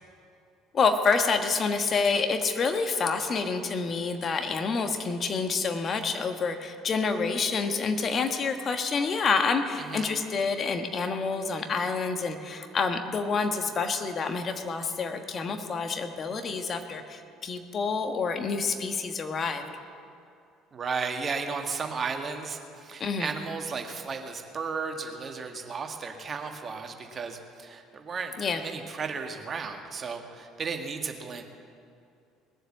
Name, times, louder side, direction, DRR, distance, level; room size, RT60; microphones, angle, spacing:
voice 1, 0.7-19.6 23.0-23.3 28.4-28.6, left 4 dB, 40° left, 6 dB, 1.4 m, -28 dB
voice 2, 20.7-31.4, right 5 dB, 35° right, 5 dB, 1.6 m, -34 dB
20.5 x 7.8 x 7.3 m, 2.5 s
figure-of-eight pair, 60°, 0 cm